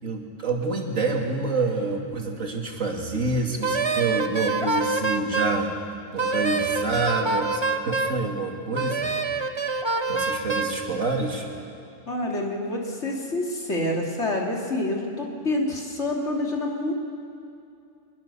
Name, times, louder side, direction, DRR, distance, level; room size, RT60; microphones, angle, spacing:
voice 1, 0.0-5.7 6.1-9.1 10.1-11.4, right 3 dB, 85° right, 1 dB, 2.9 m, -27 dB
Wind instrument woodwind instrument, 3.6-5.6 6.2-8.2 8.8-10.8, right 3 dB, 25° right, 0.8 m, -26 dB
voice 2, 12.1-16.9, left 1 dB, 60° left, -1 dB, 3.2 m, -27 dB
23.5 x 21.0 x 7.0 m, 2.6 s
omnidirectional pair, 1.3 m